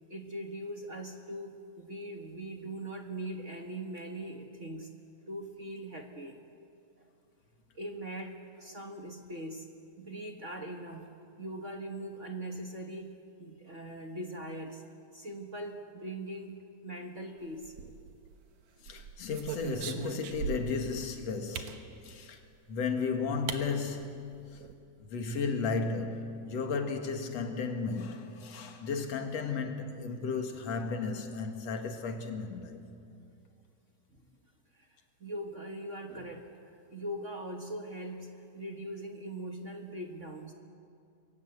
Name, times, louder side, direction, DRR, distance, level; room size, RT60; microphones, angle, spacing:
voice 1, 0.1-4.9 5.3-6.4 7.7-9.7 10.0-14.8 15.1-17.7 34.1-34.3 34.7-34.9 35.2-40.5, right 1 dB, 35° right, 1.2 m, -41 dB
sound 1, 17.6-18.3 18.9-20.9 21.5-21.8 22.9-23.0 23.5-23.6 24.0-24.1 24.3-24.7, right 7 dB, 70° right, 2.6 m, -39 dB
voice 2, 18.8-22.4 22.7-24.6 25.1-32.8, left 4 dB, 60° left, 2.9 m, -34 dB
28.0 x 22.5 x 8.0 m
omnidirectional pair, 3.4 m